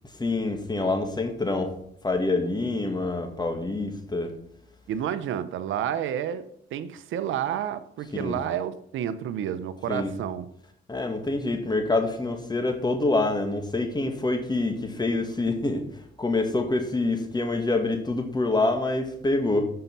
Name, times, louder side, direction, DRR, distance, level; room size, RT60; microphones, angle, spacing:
voice 1, 0.1-1.7 2.0-4.3 8.1-8.4 9.9-10.1 10.9-15.9 16.2-19.6, left 2 dB, 20° left, 2.0 m, -26 dB
voice 2, 4.9-10.5, right 9 dB, 80° right, 0.8 m, -30 dB
13.5 x 5.7 x 5.5 m
cardioid pair, 90°, 20 cm